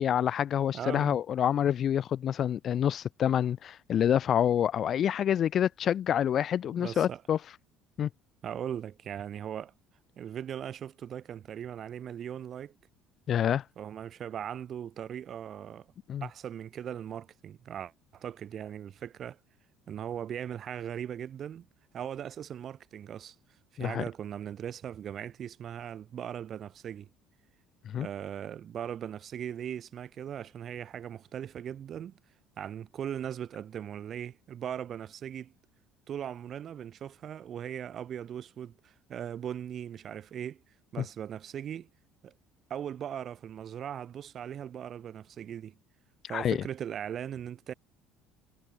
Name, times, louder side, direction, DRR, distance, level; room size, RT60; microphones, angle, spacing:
voice 1, 0.0-7.4 8.0-8.1 13.3-13.6 16.1-16.3 23.8-24.0 27.9-28.1 46.3-46.6, left 9 dB, 45° left, 0.6 m, -27 dB
voice 2, 0.7-1.2 6.8-7.2 8.4-9.7 10.2-12.7 13.8-15.9 16.2-19.4 19.9-21.7 21.9-23.4 23.7-27.1 28.0-32.1 32.6-35.5 36.1-40.6 40.9-41.9 42.2-42.3 42.7-45.8 46.3-47.7, right 9 dB, 45° right, 2.3 m, -39 dB
cardioid pair, 115°, 0 cm